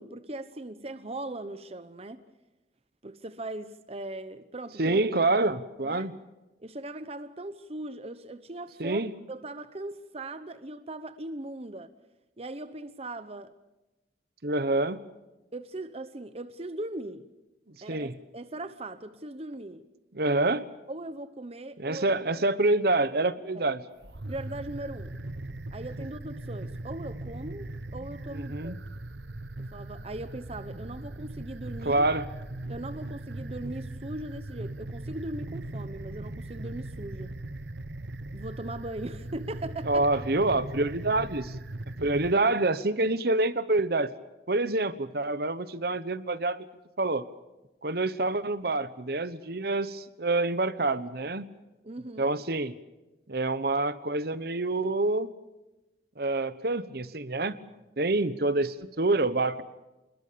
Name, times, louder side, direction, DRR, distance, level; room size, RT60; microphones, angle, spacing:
voice 1, 0.0-2.2 3.0-5.0 5.8-6.1 6.6-9.0 9.3-11.9 12.4-13.5 15.5-17.3 17.8-19.8 20.9-22.0 23.5-23.7 24.3-25.2 25.7-28.7 29.6-32.1 32.7-37.4 38.3-40.2 51.8-52.4, right 2 dB, 35° right, 0.9 m, -39 dB
voice 2, 4.8-6.1 8.8-9.1 14.4-15.0 17.9-18.1 20.1-20.7 21.8-23.8 28.3-28.8 31.8-32.3 39.9-41.5 42.0-44.1 44.5-46.7 47.0-47.3 47.8-51.5 52.2-52.7 53.3-55.3 56.2-57.6 58.0-59.6, right 2 dB, 60° right, 1.1 m, -27 dB
sound 1, 24.0-42.3, right 2 dB, 90° right, 1.2 m, -39 dB
27.0 x 21.0 x 6.9 m
head